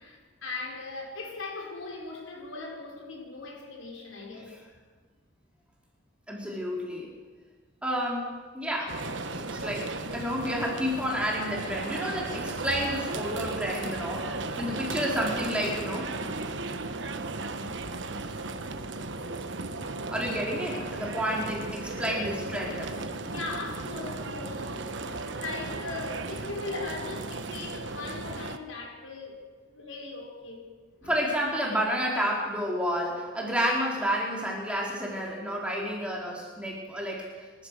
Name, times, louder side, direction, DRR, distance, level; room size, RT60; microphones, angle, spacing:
voice 1, 0.0-4.5 10.6-10.7 11.2-11.7 12.1-12.8 23.2-24.8 25.0-30.7 31.0-31.2, left 3 dB, 80° left, 5.4 m, -39 dB
voice 2, 6.3-7.1 7.8-9.0 9.3-16.1 20.1-23.0 31.1-37.3, equal, 5° right, 4.1 m, -30 dB
sound 1, 8.9-28.6, right 3 dB, 65° right, 1.2 m, -35 dB
29.0 x 14.0 x 6.7 m
head